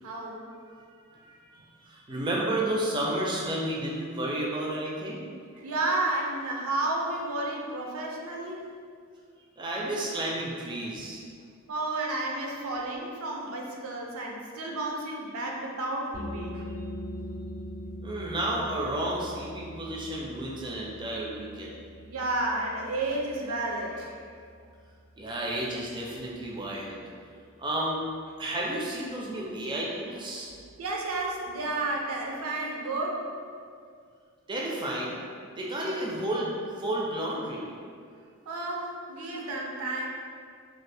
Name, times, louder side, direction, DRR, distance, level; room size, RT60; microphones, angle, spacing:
voice 1, 0.0-0.4 5.6-8.6 10.9-11.0 11.7-16.6 22.0-24.2 30.8-33.2 38.5-40.1, right 2 dB, 85° right, -1 dB, 0.5 m, -31 dB
voice 2, 1.1-1.4 1.9-5.3 9.6-11.2 18.0-21.8 25.2-27.0 27.6-28.0 28.4-30.5 34.5-35.2 35.6-37.7, right 1 dB, 20° right, -4 dB, 0.3 m, -31 dB
sound 1, 16.1-27.5, equal, 45° left, 0.4 m, -43 dB
2.6 x 2.4 x 3.3 m, 2.2 s
head